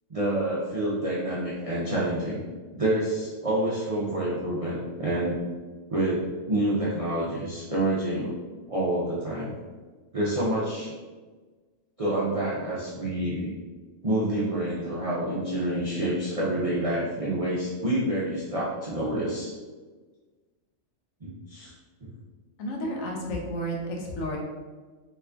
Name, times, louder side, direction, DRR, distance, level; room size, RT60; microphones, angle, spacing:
voice 1, 0.1-2.4 2.7-5.4 5.9-8.3 8.7-9.5 10.1-10.9 12.0-13.5 14.0-19.5 21.2-21.7, right 1 dB, 60° right, -7 dB, 0.3 m, -28 dB
voice 2, 22.6-24.4, equal, 90° left, -1 dB, 1.1 m, -31 dB
2.9 x 2.4 x 3.3 m, 1.4 s
omnidirectional pair, 1.4 m